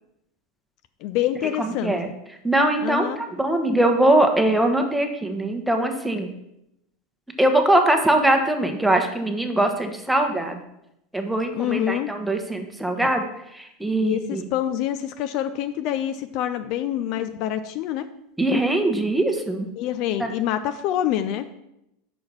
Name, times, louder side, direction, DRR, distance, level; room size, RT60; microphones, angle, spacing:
voice 1, 1.0-1.9 2.8-3.2 11.5-12.1 13.0-13.1 14.0-18.1 19.8-21.4, left 11 dB, 55° left, 11 dB, 0.4 m, -26 dB
voice 2, 1.6-2.1 2.4-6.3 7.4-10.6 11.1-13.2 13.5-14.4 18.4-19.7, right 1 dB, 5° right, 4 dB, 1.1 m, -21 dB
6.1 x 4.6 x 5.5 m, 0.83 s
hypercardioid pair, 85°, 0 cm